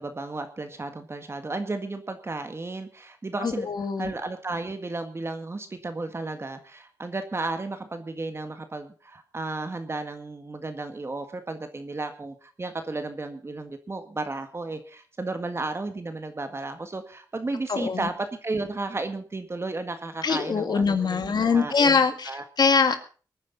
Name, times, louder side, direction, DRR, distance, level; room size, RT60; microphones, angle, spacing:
voice 1, 0.0-3.7 4.0-22.4, right 2 dB, 35° right, 7 dB, 1.7 m, -33 dB
voice 2, 3.4-4.1 17.7-18.1 20.2-22.3 22.6-23.0, left 5 dB, 65° left, 8 dB, 2.1 m, -23 dB
23.0 x 9.8 x 4.1 m, 0.37 s
wide cardioid pair, 85°, 8 cm